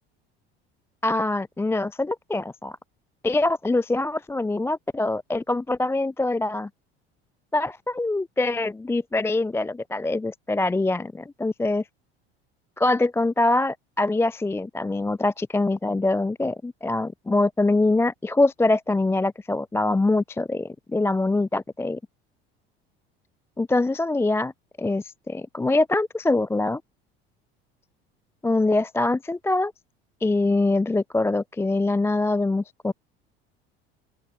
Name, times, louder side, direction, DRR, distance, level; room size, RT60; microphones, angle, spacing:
voice 1, 1.0-2.8 3.2-6.7 7.5-11.8 12.8-22.0 23.6-24.5 24.8-26.8 28.4-29.7 30.2-32.9, left 2 dB, 10° left, 0.5 m, -24 dB
open air
hypercardioid pair, 75°, 31 cm